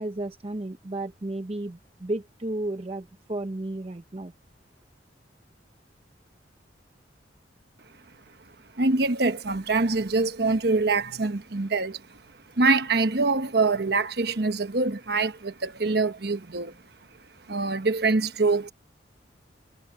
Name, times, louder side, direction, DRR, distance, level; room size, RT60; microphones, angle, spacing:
voice 1, 0.0-4.3, right 1 dB, 30° right, 0.7 m, -33 dB
voice 2, 8.8-12.0 12.6-16.7 17.5-18.7, right 3 dB, 60° right, 1.1 m, -24 dB
head